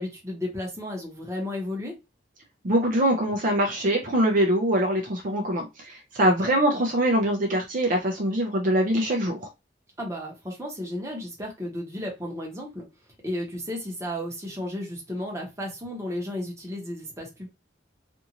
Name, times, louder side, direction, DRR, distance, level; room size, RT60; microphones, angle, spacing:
voice 1, 0.0-1.9 6.2-6.5 10.0-12.8 13.2-17.5, left 1 dB, 15° right, -1 dB, 0.9 m, -33 dB
voice 2, 2.6-9.3, right 1 dB, 45° right, 1 dB, 0.5 m, -23 dB
2.6 x 2.4 x 2.9 m, 0.23 s
head